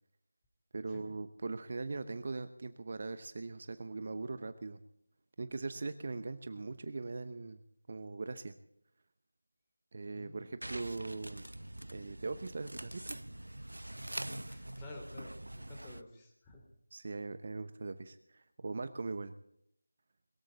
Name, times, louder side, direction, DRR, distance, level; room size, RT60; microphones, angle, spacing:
voice 1, 0.7-4.8 5.4-7.6 7.9-8.5 9.9-11.5 11.9-13.2 16.9-19.3, right 3 dB, 40° right, 12 dB, 0.9 m, -40 dB
voice 2, 10.1-10.7 14.4-16.6, left 2 dB, 10° left, 0 dB, 3.3 m, -52 dB
sound 1, 10.6-16.0, right 1 dB, 80° right, 0.8 m, -44 dB
21.5 x 14.0 x 4.1 m, 0.76 s
figure-of-eight pair, 165°, 0 cm